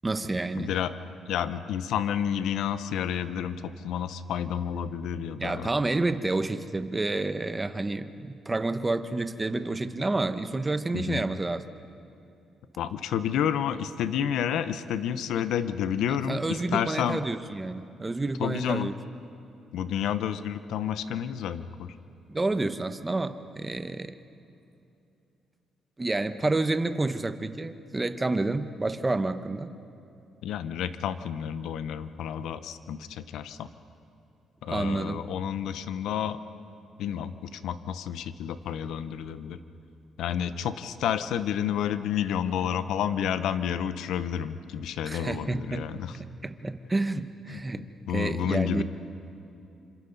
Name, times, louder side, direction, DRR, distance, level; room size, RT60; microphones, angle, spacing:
voice 1, 0.0-0.7 5.4-11.6 16.3-18.9 22.3-24.1 26.0-29.7 34.7-35.2 45.1-45.9 46.1-47.8 48.1-48.8, right 2 dB, 20° right, 10 dB, 1.1 m, -29 dB
voice 2, 0.6-0.9 1.3-5.7 10.9-11.2 12.8-17.2 18.4-18.9 19.7-21.9 30.4-33.7 34.6-36.4 37.0-39.6 40.2-46.1 47.5-47.6 48.1-48.8, left 9 dB, 80° left, 12 dB, 0.9 m, -30 dB
28.0 x 26.0 x 4.0 m, 2.7 s
cardioid pair, 90°, 0 cm